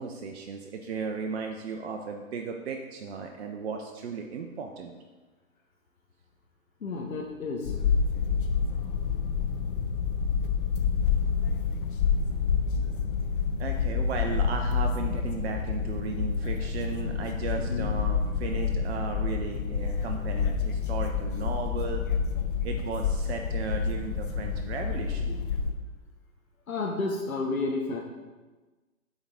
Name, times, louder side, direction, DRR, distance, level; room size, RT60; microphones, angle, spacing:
voice 1, 0.0-4.9 13.6-22.0 22.6-25.3, right 5 dB, 50° right, 3 dB, 0.6 m, -35 dB
voice 2, 6.8-7.7 17.6-17.9 25.3-25.4 26.7-28.0, left 3 dB, 75° left, 0 dB, 1.0 m, -31 dB
sound 1, 7.6-25.7, left 6 dB, 40° left, 0.6 m, -28 dB
9.0 x 3.5 x 3.9 m, 1.3 s
figure-of-eight pair, 125°, 42 cm